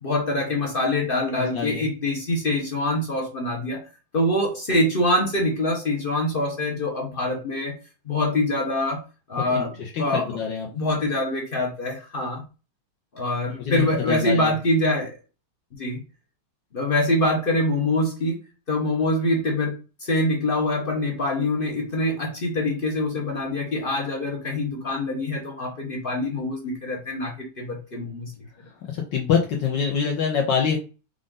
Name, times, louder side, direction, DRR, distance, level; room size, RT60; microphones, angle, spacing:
voice 1, 0.0-3.8 4.1-7.8 8.1-9.0 9.3-10.3 10.7-12.4 13.1-15.2 15.8-16.0 16.7-18.4 18.7-28.3, left 1 dB, 50° left, 0 dB, 0.6 m, -24 dB
voice 2, 1.5-1.8 9.5-9.7 9.9-10.7 13.6-14.5 28.9-30.8, left 7 dB, 65° left, 0 dB, 1.3 m, -24 dB
5.2 x 2.5 x 3.7 m, 0.32 s
omnidirectional pair, 2.3 m